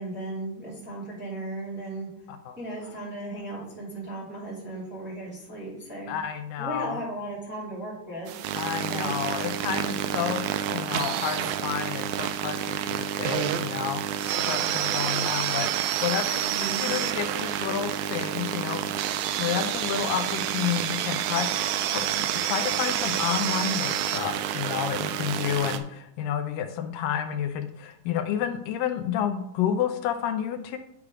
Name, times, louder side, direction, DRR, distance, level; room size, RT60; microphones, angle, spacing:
voice 1, 0.0-2.1 2.6-6.1 6.6-8.3 8.8-9.2 16.4-16.9, right 2 dB, 5° right, -5 dB, 1.9 m, -36 dB
voice 2, 6.1-7.0 8.5-18.8 19.3-30.8, left 9 dB, 80° left, 7 dB, 2.2 m, -30 dB
sound 1, 8.3-25.8, right 10 dB, 90° right, 1.7 m, -28 dB
9.6 x 3.3 x 4.8 m, 0.74 s
omnidirectional pair, 3.9 m